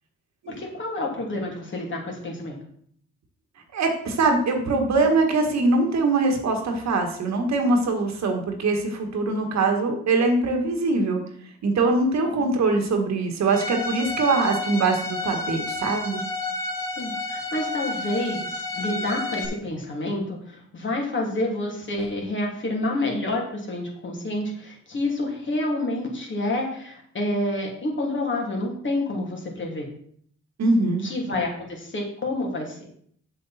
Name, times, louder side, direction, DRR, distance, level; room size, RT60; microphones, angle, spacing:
voice 1, 0.5-2.6 12.4-12.5 17.0-29.8 31.0-32.8, left 2 dB, 40° left, -1 dB, 2.9 m, -28 dB
voice 2, 3.7-11.2 11.6-16.2 30.6-31.0, right 3 dB, 65° right, 3 dB, 1.8 m, -22 dB
Bowed string instrument, 13.5-19.5, left 2 dB, 10° left, 1.6 m, -31 dB
7.4 x 7.2 x 4.3 m, 0.63 s
cardioid pair, 90°, 30 cm